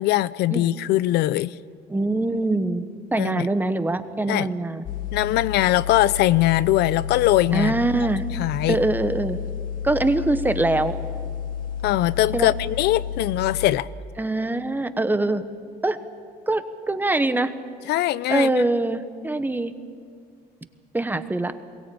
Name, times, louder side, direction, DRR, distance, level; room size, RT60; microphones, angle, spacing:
voice 1, 0.0-1.6 3.2-3.5 4.3-4.5 5.1-7.7 8.3-8.8 11.8-13.9 17.9-18.6, left 15 dB, 80° left, 18 dB, 0.5 m, -21 dB
voice 2, 1.9-2.8 3.1-4.8 7.5-8.2 8.7-9.4 9.8-10.9 12.3-12.5 14.2-15.4 15.8-16.0 16.5-17.5 18.3-19.7 20.9-21.5, right 2 dB, 10° right, 10 dB, 1.1 m, -23 dB
sound 1, 4.8-13.7, left 7 dB, 55° left, 1.5 m, -31 dB
22.0 x 17.0 x 8.6 m, 2.2 s
cardioid pair, 110°, 17 cm